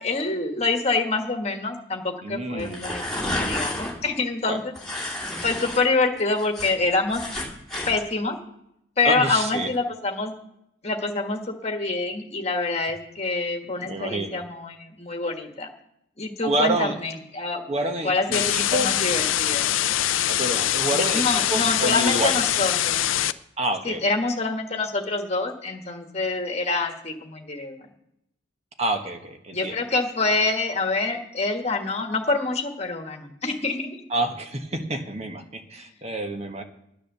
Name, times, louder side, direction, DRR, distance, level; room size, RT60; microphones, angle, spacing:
voice 1, 0.0-4.7 5.0-5.1 5.4-7.2 7.8-8.4 9.0-10.3 10.8-15.7 16.2-17.6 18.0-18.4 18.7-19.6 20.9-23.0 23.8-27.8 29.5-34.0, left 3 dB, 35° left, 4 dB, 1.5 m, -26 dB
voice 2, 2.2-2.8 4.4-4.6 9.0-9.7 13.8-14.4 16.4-17.0 17.7-19.0 20.1-21.2 21.5-22.4 23.6-24.0 28.8-29.7 34.1-36.6, right 1 dB, 35° right, 5 dB, 1.2 m, -28 dB
sound 1, 2.6-3.9 4.8-5.8 6.2-7.9, left 1 dB, ahead, 2.8 m, -30 dB
sound 2, 18.3-23.3, left 12 dB, 90° left, 0.5 m, -23 dB
10.0 x 9.8 x 6.8 m, 0.77 s
head